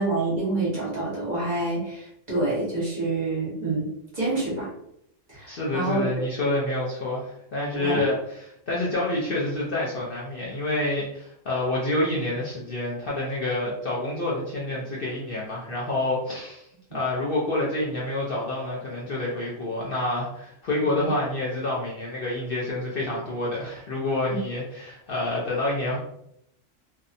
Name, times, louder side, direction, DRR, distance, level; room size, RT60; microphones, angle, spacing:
voice 1, 0.0-3.9 4.1-4.7 5.3-6.2 7.7-8.0 20.9-21.1, right 2 dB, 35° right, -7 dB, 1.1 m, -27 dB
voice 2, 5.5-16.7 16.9-26.0, left 2 dB, 55° left, -5 dB, 0.7 m, -28 dB
2.7 x 2.1 x 2.5 m, 0.75 s
omnidirectional pair, 1.3 m